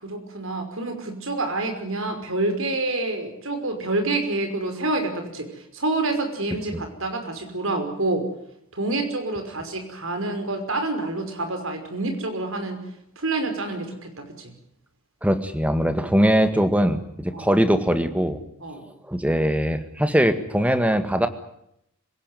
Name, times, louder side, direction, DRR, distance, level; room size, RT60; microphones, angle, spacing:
voice 1, 0.0-5.5 5.7-8.3 8.7-12.8 13.2-14.5 17.3-17.5 18.6-18.8, right 2 dB, 65° right, 6 dB, 5.6 m, -27 dB
voice 2, 15.2-18.4 19.1-21.3, equal, 5° right, 9 dB, 1.9 m, -21 dB
26.0 x 17.5 x 9.3 m, 0.77 s
head